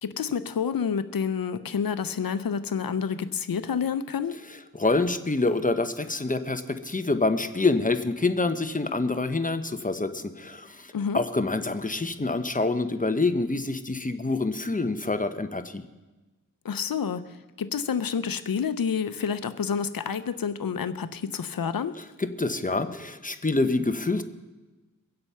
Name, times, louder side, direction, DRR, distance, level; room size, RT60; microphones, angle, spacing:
voice 1, 0.0-4.4 10.9-11.2 16.6-22.0, left 6 dB, 85° left, 13 dB, 0.7 m, -29 dB
voice 2, 4.8-15.8 22.2-24.2, left 3 dB, 25° left, 8 dB, 1.0 m, -26 dB
23.0 x 7.8 x 5.7 m, 1.2 s
wide cardioid pair, 55°, 34 cm